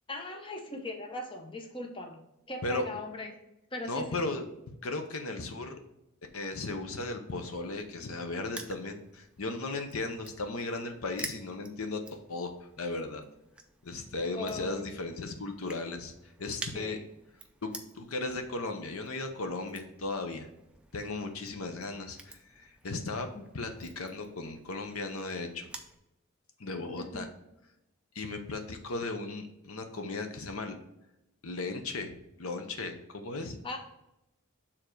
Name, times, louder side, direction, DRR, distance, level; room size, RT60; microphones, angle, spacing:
voice 1, 0.1-2.2 2.5-3.4 3.7-4.3 14.3-14.9 16.7-17.1 23.3-23.5 27.0-27.3 33.6-33.8, left 2 dB, 25° left, 3 dB, 0.8 m, -39 dB
voice 2, 3.9-5.8 6.3-12.5 12.8-13.2 13.8-16.1 16.4-17.0 17.6-17.7 17.9-20.5 20.9-23.3 23.5-25.7 26.6-27.3 28.1-30.8 31.4-32.1 32.4-33.6, left 3 dB, 80° left, 6 dB, 0.8 m, -36 dB
Crushing, 7.4-26.0, right 2 dB, 5° right, 0.5 m, -50 dB
6.9 x 3.7 x 4.5 m, 0.87 s
head